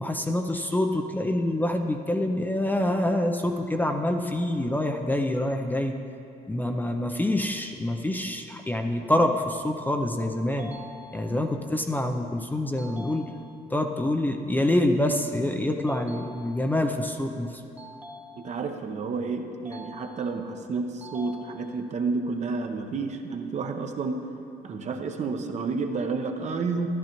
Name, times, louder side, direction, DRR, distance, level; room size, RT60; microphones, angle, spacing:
voice 1, 0.0-5.9 6.5-10.7 11.1-13.2 13.7-17.5, left 1 dB, 10° left, 3 dB, 0.5 m, -26 dB
sound 1, 10.6-11.6 12.8-13.8 15.9-16.9 17.8-18.8 19.6-20.6 21.0-22.0, equal, 10° right, 0.9 m, -46 dB
voice 2, 18.4-24.2 24.6-26.9, right 4 dB, 45° right, 5 dB, 0.8 m, -30 dB
13.5 x 11.0 x 3.0 m, 2.7 s
cardioid pair, 110°, 17 cm